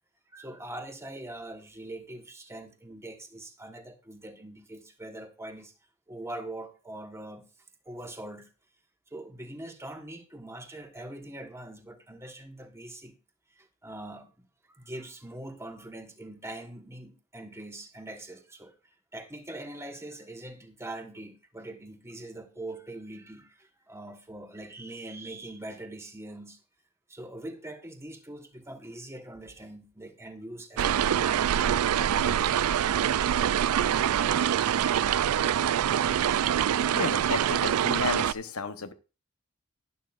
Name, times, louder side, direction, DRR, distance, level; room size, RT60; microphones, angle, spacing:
voice 1, 0.3-5.7 6.1-7.4 7.8-8.5 9.1-13.2 13.5-14.5 14.7-18.7 19.1-26.6 27.1-31.4, right 1 dB, 10° right, 1.2 m, -42 dB
sound 1, 30.8-38.3, right 9 dB, 85° right, 0.4 m, -25 dB
voice 2, 36.9-38.9, left 4 dB, 75° left, 1.0 m, -33 dB
11.0 x 11.0 x 2.5 m
head